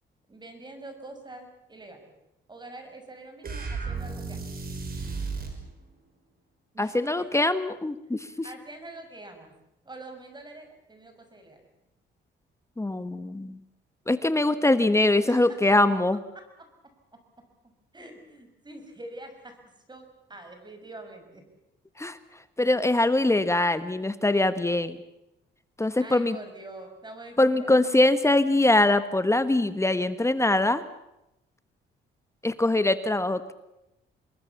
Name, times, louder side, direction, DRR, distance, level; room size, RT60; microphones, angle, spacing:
voice 1, 0.3-2.1 2.5-4.5 6.7-7.5 8.2-9.5 9.8-11.7 15.2-15.6 16.1-16.7 17.1-17.2 17.6-19.6 19.9-21.5 26.0-27.7, right 2 dB, 20° right, 6 dB, 6.1 m, -45 dB
sound 1, 3.4-5.6, right 4 dB, 50° right, 5.8 m, -34 dB
voice 2, 6.8-8.3 12.8-13.6 14.1-16.2 22.0-22.2 22.6-25.0 25.8-26.4 27.4-30.8 32.4-33.5, left 2 dB, 15° left, 12 dB, 1.3 m, -23 dB
27.0 x 21.0 x 7.2 m, 0.89 s
cardioid pair, 90°, 20 cm